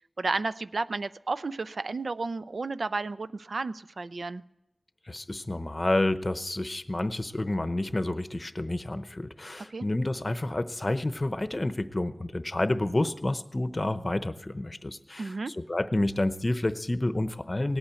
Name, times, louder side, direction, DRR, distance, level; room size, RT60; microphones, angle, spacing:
voice 1, 0.0-4.4 9.7-9.9 15.2-15.5, right 3 dB, 75° right, 14 dB, 0.5 m, -32 dB
voice 2, 5.1-17.8, left 1 dB, 30° left, 12 dB, 0.8 m, -29 dB
18.0 x 8.8 x 8.2 m, 0.91 s
wide cardioid pair, 80°, 0 cm